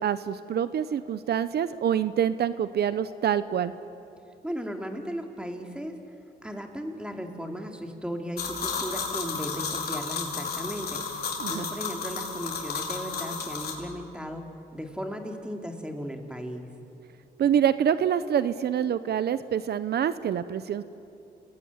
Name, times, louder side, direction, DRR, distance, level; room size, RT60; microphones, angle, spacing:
voice 1, 0.0-3.7 11.4-11.7 17.4-20.8, right 9 dB, 75° right, 14 dB, 0.8 m, -26 dB
voice 2, 4.4-6.0 6.4-11.2 11.5-14.4 14.7-16.7, equal, 5° right, 4 dB, 3.0 m, -36 dB
sound 1, 8.4-13.7, left 5 dB, 70° left, 4.9 m, -33 dB
29.0 x 20.0 x 9.8 m, 2.7 s
cardioid pair, 90°, 17 cm